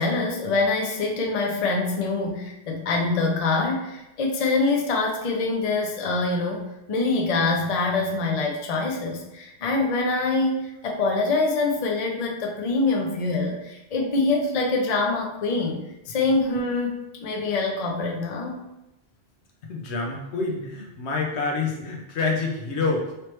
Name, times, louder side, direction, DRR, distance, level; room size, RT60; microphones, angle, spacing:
voice 1, 0.0-18.6, left 3 dB, 45° left, 1 dB, 0.6 m, -25 dB
voice 2, 19.7-23.1, left 3 dB, 85° left, 0 dB, 1.0 m, -27 dB
3.3 x 3.1 x 2.9 m, 0.92 s
omnidirectional pair, 1.1 m